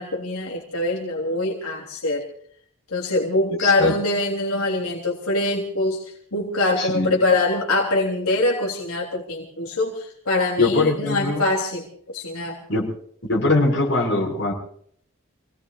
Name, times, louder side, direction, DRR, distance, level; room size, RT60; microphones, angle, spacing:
voice 1, 0.0-2.3 2.9-6.0 6.3-12.6, left 2 dB, 85° left, 0 dB, 3.4 m, -23 dB
voice 2, 3.6-3.9 6.8-7.1 10.6-11.4 12.7-12.9 13.2-14.5, left 2 dB, 55° left, -1 dB, 5.7 m, -21 dB
29.0 x 18.5 x 2.5 m, 0.62 s
head